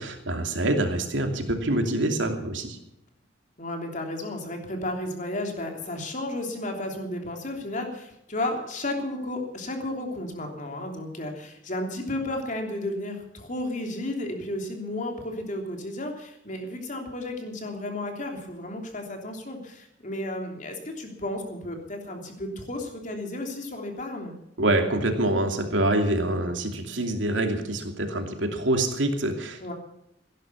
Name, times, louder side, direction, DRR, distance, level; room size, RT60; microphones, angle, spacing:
voice 1, 0.0-2.8 24.6-29.7, right 1 dB, 85° right, 4 dB, 2.7 m, -26 dB
voice 2, 3.6-24.4 29.6-29.7, left 1 dB, 45° left, 3 dB, 3.2 m, -33 dB
17.0 x 11.0 x 7.0 m, 0.79 s
head